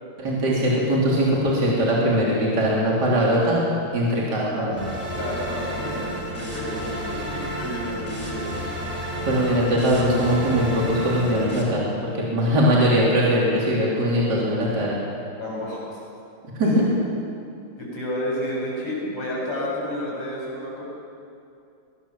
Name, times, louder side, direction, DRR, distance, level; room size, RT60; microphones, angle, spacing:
voice 1, 0.2-3.6 3.9-4.9 9.2-15.0 16.6-16.8, equal, 50° right, -5 dB, 4.0 m, -21 dB
sound 1, 4.8-11.6, right 1 dB, 20° right, 4.3 m, -31 dB
voice 2, 5.1-8.7 9.1-9.3 15.4-15.9 16.6-16.9 17.8-20.8, left 1 dB, 85° left, -5 dB, 8.4 m, -31 dB
22.5 x 19.0 x 7.3 m, 2.5 s
omnidirectional pair, 2.4 m